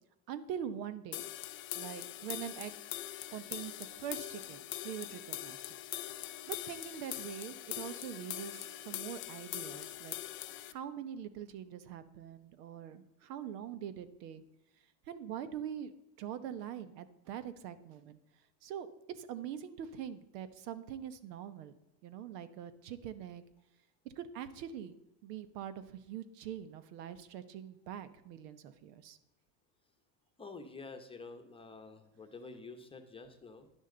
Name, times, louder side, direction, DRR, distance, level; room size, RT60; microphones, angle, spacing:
voice 1, 0.3-1.2 1.7-2.7 3.3-5.6 6.5-10.2 10.7-14.4 15.1-15.9 16.2-18.2 18.6-18.9 19.1-21.7 22.0-23.4 24.0-24.9 25.2-29.2, right 9 dB, 80° right, 13 dB, 1.1 m, -43 dB
sound 1, 1.1-10.7, left 14 dB, 30° left, 0.4 m, -42 dB
voice 2, 30.4-33.7, left 3 dB, 10° left, 6 dB, 0.9 m, -49 dB
11.0 x 10.0 x 3.9 m, 0.91 s
supercardioid pair, 135°, 48 cm